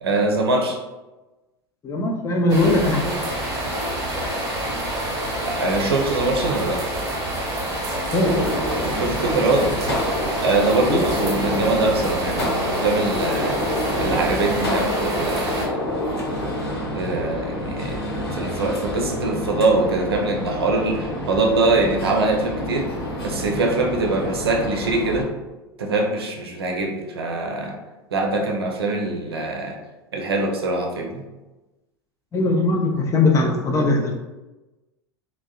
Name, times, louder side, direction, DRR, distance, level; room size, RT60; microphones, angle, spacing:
voice 1, 0.0-0.8 5.5-6.8 8.9-9.7 10.4-13.6 14.0-15.7 17.0-18.0 18.3-22.9 23.2-25.3 25.8-27.8 28.1-29.8 30.1-31.2, right 2 dB, 80° right, 2 dB, 0.5 m, -23 dB
voice 2, 1.8-3.3 4.0-4.1 8.1-8.4 10.8-11.1 32.3-34.2, left 2 dB, 25° left, 2 dB, 0.5 m, -20 dB
sound 1, 2.5-15.7, right 1 dB, 30° right, 1.0 m, -27 dB
Gunshot gunfire, 8.2-25.2, left 1 dB, 85° left, 0.9 m, -28 dB
3.5 x 2.1 x 2.3 m, 1.1 s
figure-of-eight pair, 80°, 13 cm